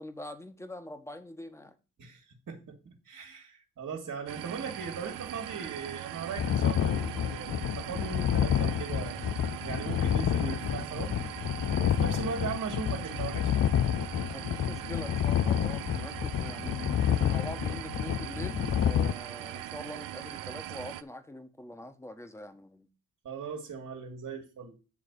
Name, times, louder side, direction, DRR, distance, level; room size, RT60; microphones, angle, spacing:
voice 1, 0.0-1.7 14.3-22.9, left 1 dB, 10° left, 1.3 m, -44 dB
voice 2, 2.0-9.2 9.6-11.2 11.8-13.5 23.2-24.7, right 6 dB, 60° right, 2.0 m, -38 dB
sound 1, 4.3-21.0, right 13 dB, 80° right, 0.5 m, -41 dB
sound 2, 6.4-19.1, left 10 dB, 50° left, 0.5 m, -29 dB
9.5 x 3.3 x 6.7 m
supercardioid pair, 45°, 32 cm